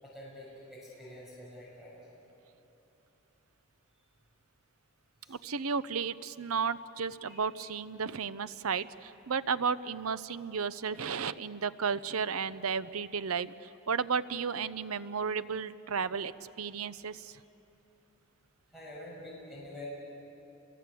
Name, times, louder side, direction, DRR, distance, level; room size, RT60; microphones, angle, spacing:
voice 1, 0.0-2.1 5.2-5.4 7.2-7.4 18.7-19.9, left 1 dB, ahead, -5 dB, 6.3 m, -47 dB
voice 2, 5.3-17.4, right 6 dB, 85° right, 15 dB, 0.7 m, -33 dB
30.0 x 23.0 x 8.4 m, 3.0 s
head